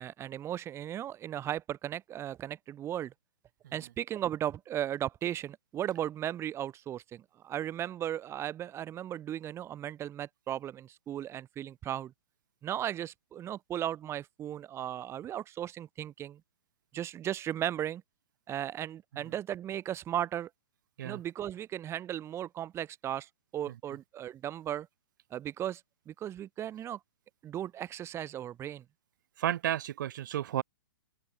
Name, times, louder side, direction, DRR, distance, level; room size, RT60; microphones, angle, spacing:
voice 1, 0.0-3.1 3.7-12.1 12.6-16.4 16.9-18.0 18.5-20.5 21.0-24.9 25.3-25.8 26.1-27.0 27.4-28.8, right 11 dB, 20° right, 1.9 m, -36 dB
voice 2, 29.4-30.6, right 12 dB, 55° right, 1.7 m, -32 dB
open air
figure-of-eight pair, 120°, 12 cm